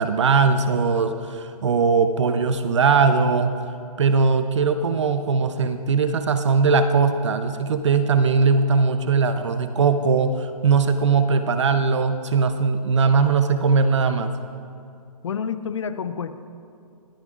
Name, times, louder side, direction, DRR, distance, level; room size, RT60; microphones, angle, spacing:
voice 1, 0.0-3.5 4.0-14.3, right 5 dB, 50° right, 9 dB, 0.7 m, -20 dB
voice 2, 15.2-16.5, left 7 dB, 50° left, 12 dB, 0.6 m, -29 dB
25.5 x 9.0 x 2.4 m, 2.5 s
hypercardioid pair, 170°, 20 cm